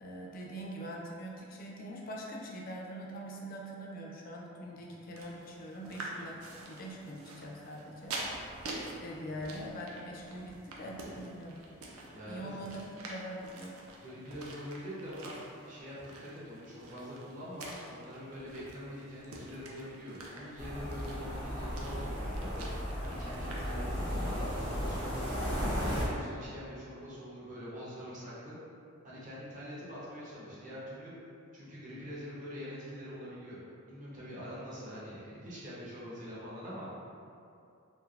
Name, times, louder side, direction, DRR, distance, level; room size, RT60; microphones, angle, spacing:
voice 1, 0.0-8.2 9.0-11.6 12.2-13.8, equal, 45° left, -2 dB, 0.4 m, -43 dB
sound 1, 5.2-24.2, right 2 dB, 85° right, 0.5 m, -47 dB
voice 2, 12.1-12.6 14.0-22.7 23.0-28.6 29.0-31.1 31.5-33.6 33.9-36.9, equal, 35° right, -9 dB, 0.8 m, -44 dB
sound 2, 20.6-26.0, equal, 65° right, 0.9 m, -35 dB
3.2 x 2.5 x 2.4 m, 2.6 s
head